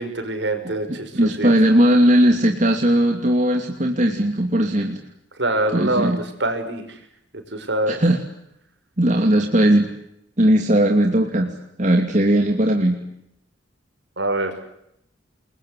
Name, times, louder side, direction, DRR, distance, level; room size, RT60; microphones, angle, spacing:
voice 1, 0.0-1.5 5.4-7.0 7.5-8.0 14.2-14.5, right 1 dB, 65° right, 7 dB, 5.8 m, -24 dB
voice 2, 0.9-5.0 5.7-6.2 7.9-8.2 9.0-9.9 10.4-11.5 11.8-13.0, right 1 dB, 40° right, 3 dB, 2.8 m, -18 dB
28.5 x 22.0 x 8.4 m, 0.79 s
head